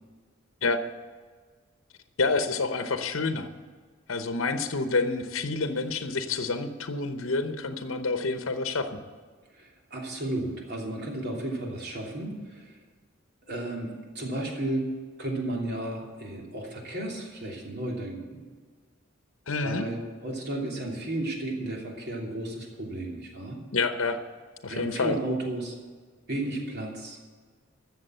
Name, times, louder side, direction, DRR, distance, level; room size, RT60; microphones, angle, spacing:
voice 1, 2.2-3.5 4.1-9.0 19.5-19.9 23.7-24.2 24.6-25.1, left 3 dB, 80° left, 8 dB, 0.9 m, -28 dB
voice 2, 9.5-12.7 13.5-14.9 15.2-18.4 19.6-23.6 24.7-25.7 26.3-27.2, right 1 dB, 55° right, -1 dB, 3.0 m, -33 dB
13.5 x 7.4 x 7.8 m, 1.5 s
head